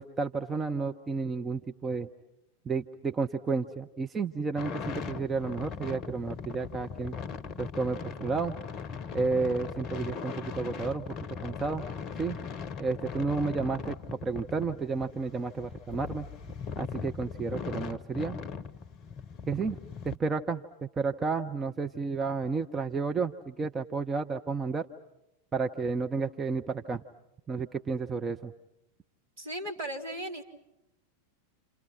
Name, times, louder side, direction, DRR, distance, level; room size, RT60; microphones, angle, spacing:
voice 1, 0.0-2.1 2.6-7.1 7.6-8.6 9.1-11.1 11.4-11.8 12.2-12.4 12.8-16.3 16.8-18.4 19.5-19.8 20.0-24.9 25.5-27.0 27.5-28.5, right 4 dB, 20° right, 5 dB, 0.9 m, -31 dB
sound 1, 4.6-20.2, left 6 dB, 35° left, 0.9 m, -39 dB
voice 2, 29.4-30.4, right 1 dB, 60° right, 1 dB, 3.9 m, -36 dB
29.0 x 28.5 x 6.0 m, 0.90 s
figure-of-eight pair, 90°, 0 cm